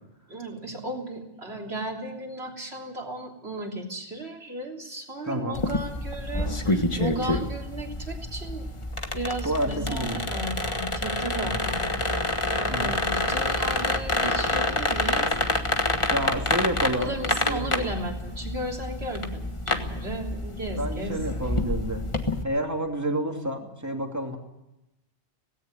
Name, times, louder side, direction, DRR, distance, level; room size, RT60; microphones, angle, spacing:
voice 1, 0.3-8.7 9.1-12.0 12.6-15.7 17.0-21.2, right 1 dB, 65° right, 1 dB, 3.7 m, -35 dB
voice 2, 5.2-5.6 9.4-10.2 11.4-11.6 12.7-12.9 16.1-17.1 17.5-17.9 20.8-22.0 22.4-24.4, right 1 dB, 15° right, 2 dB, 2.7 m, -29 dB
sound 1, 5.5-22.4, left 2 dB, 25° left, 1.5 m, -28 dB
18.0 x 17.0 x 8.9 m, 0.91 s
omnidirectional pair, 1.2 m